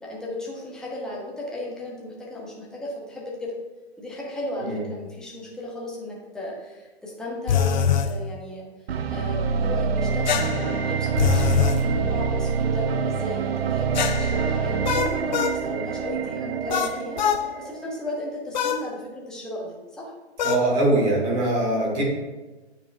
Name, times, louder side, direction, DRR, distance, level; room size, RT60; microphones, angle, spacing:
voice 1, 0.0-3.6 4.0-8.7 9.1-20.1, left 1 dB, ahead, -4 dB, 0.9 m, -35 dB
sound 1, 7.5-8.1 10.3-11.8 13.9-15.6 16.7-17.4 18.5-18.8 20.4-20.7, left 8 dB, 40° left, 0.4 m, -24 dB
sound 2, 8.9-17.9, right 6 dB, 60° right, 0.5 m, -26 dB
voice 2, 20.4-22.0, right 2 dB, 25° right, -3 dB, 1.9 m, -22 dB
9.3 x 4.3 x 2.6 m, 1.2 s
figure-of-eight pair, 130°, 35 cm